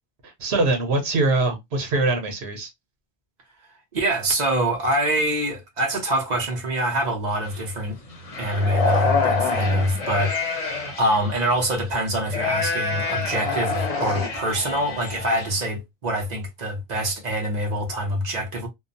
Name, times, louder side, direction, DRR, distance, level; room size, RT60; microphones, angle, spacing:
voice 1, 0.2-2.7, right 2 dB, 75° right, 1.1 m, -23 dB
voice 2, 3.9-8.0 8.4-18.7, right 1 dB, 45° right, 0.9 m, -25 dB
sound 1, 7.4-7.6 8.1-11.6 12.2-15.6, left 4 dB, 40° left, 0.7 m, -27 dB
2.8 x 2.1 x 2.5 m
omnidirectional pair, 1.1 m